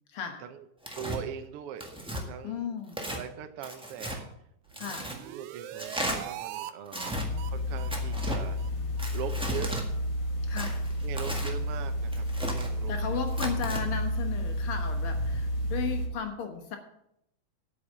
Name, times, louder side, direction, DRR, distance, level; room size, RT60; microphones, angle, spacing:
voice 1, 0.1-0.4 2.4-3.0 4.8-5.1 6.9-7.5 10.5-10.8 12.9-16.8, left 7 dB, 55° left, 6 dB, 1.8 m, -35 dB
Tearing, 0.8-1.2 1.8-2.2 2.9-3.2 3.6-4.2 4.7-5.2 5.8-6.2 6.9-7.3 7.9-8.4 9.0-9.8 10.6-11.5 12.1-12.7 13.3-13.8, right 1 dB, 5° right, 0.6 m, -35 dB
voice 2, 1.0-1.9 2.3-2.7 3.1-4.3 5.2-7.2 7.5-8.6 9.1-9.7 11.0-12.3 12.5-13.4, right 9 dB, 70° right, 8 dB, 1.5 m, -41 dB
sound 1, 4.7-6.7 7.0-7.1 7.4-7.5 7.8-7.9 8.2-8.3 8.6-8.7 9.0-9.1 9.4-9.5 9.8-9.9, right 12 dB, 90° right, 2.1 m, -41 dB
sound 2, 7.1-16.1, equal, 90° left, 3.4 m, -31 dB
8.3 x 7.3 x 8.4 m, 0.78 s
omnidirectional pair, 3.3 m